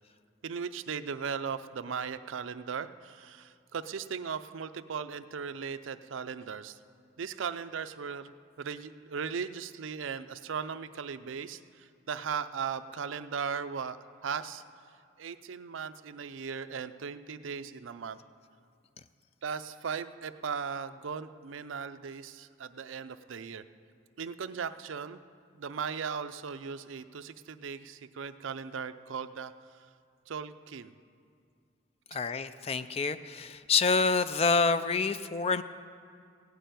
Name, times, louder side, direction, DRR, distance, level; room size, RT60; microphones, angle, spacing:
voice 1, 0.4-6.8 7.2-14.6 15.2-18.2 19.4-23.6 24.2-25.2 25.5-29.9 30.3-31.0, right 6 dB, 80° right, 12 dB, 0.5 m, -38 dB
voice 2, 32.1-35.6, left 4 dB, 30° left, 12 dB, 0.3 m, -27 dB
16.0 x 6.8 x 9.1 m, 2.3 s
head